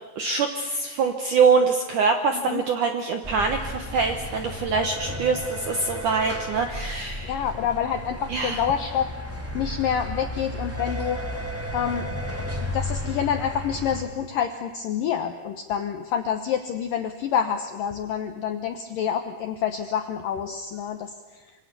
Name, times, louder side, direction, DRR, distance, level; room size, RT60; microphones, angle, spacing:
voice 1, 0.2-7.4 8.3-8.6, right 5 dB, 70° right, 5 dB, 1.9 m, -24 dB
sound 1, 3.2-14.0, left 1 dB, 5° right, 1.3 m, -33 dB
voice 2, 7.2-9.1 9.5-11.2 11.7-12.1 12.6-21.1, left 8 dB, 75° left, 7 dB, 2.0 m, -27 dB
26.0 x 25.0 x 6.9 m, 1.3 s
omnidirectional pair, 5.4 m